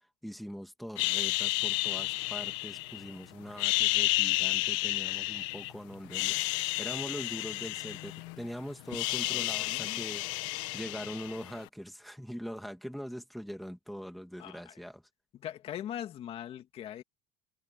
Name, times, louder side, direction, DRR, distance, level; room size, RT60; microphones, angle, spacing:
voice 1, 0.2-10.2 10.7-15.0, equal, ahead, 2.1 m, -42 dB
sound 1, 1.0-3.1 3.5-5.7 6.0-8.5 8.7-11.6, left 20 dB, 90° left, 2.2 m, -31 dB
voice 2, 9.3-10.0 14.4-14.8 15.3-17.0, left 10 dB, 40° left, 2.4 m, -41 dB
cardioid pair, 155°, 16 cm